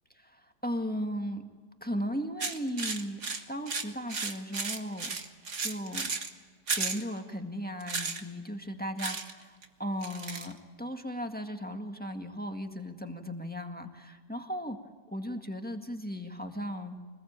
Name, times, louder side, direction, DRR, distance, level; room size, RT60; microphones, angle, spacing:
voice 1, 0.1-1.4 1.8-3.2 3.5-5.3 5.6-6.1 6.7-14.8 15.1-17.0, equal, 5° left, 4 dB, 1.7 m, -36 dB
sound 1, 2.4-6.3 6.7-7.0 7.8-8.2 9.0-9.3 9.6-9.7 10.0-10.5, right 4 dB, 40° right, 1.8 m, -34 dB
25.0 x 20.5 x 8.8 m, 1.4 s
omnidirectional pair, 2.0 m